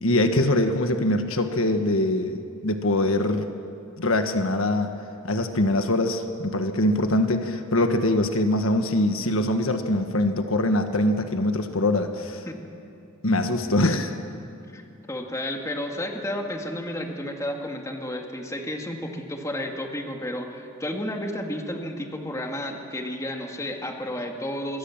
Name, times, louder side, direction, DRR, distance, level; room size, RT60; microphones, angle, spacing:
voice 1, 0.0-3.5 4.0-4.9 5.2-12.4 13.2-14.1, left 1 dB, 70° left, 6 dB, 1.5 m, -23 dB
voice 2, 14.7-24.8, left 1 dB, 15° left, 2 dB, 2.1 m, -32 dB
26.5 x 22.5 x 7.3 m, 2.5 s
head